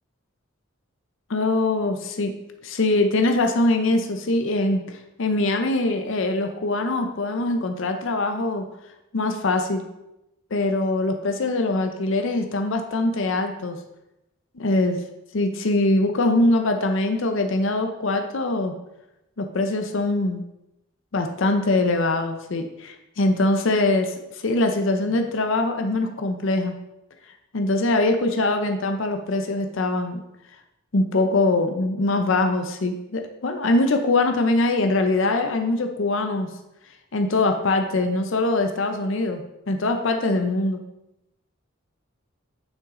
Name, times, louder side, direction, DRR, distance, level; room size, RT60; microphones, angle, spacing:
voice 1, 1.3-2.3 2.6-8.6 9.1-9.8 10.5-13.8 14.6-15.0 15.3-18.7 19.4-20.4 21.1-26.7 27.5-30.2 30.9-36.5 37.1-40.8, left 2 dB, 60° left, 5 dB, 0.6 m, -23 dB
7.4 x 6.2 x 3.7 m, 0.91 s
head